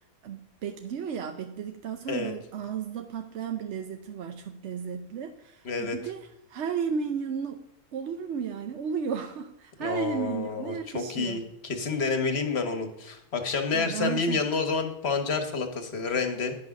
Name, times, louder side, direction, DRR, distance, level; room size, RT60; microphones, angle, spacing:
voice 1, 0.2-7.6 7.9-11.4 13.7-14.4, right 7 dB, 60° right, 6 dB, 0.8 m, -34 dB
voice 2, 5.6-6.0 9.8-16.5, left 4 dB, 45° left, 5 dB, 1.4 m, -29 dB
10.5 x 6.2 x 5.9 m, 0.80 s
omnidirectional pair, 1.6 m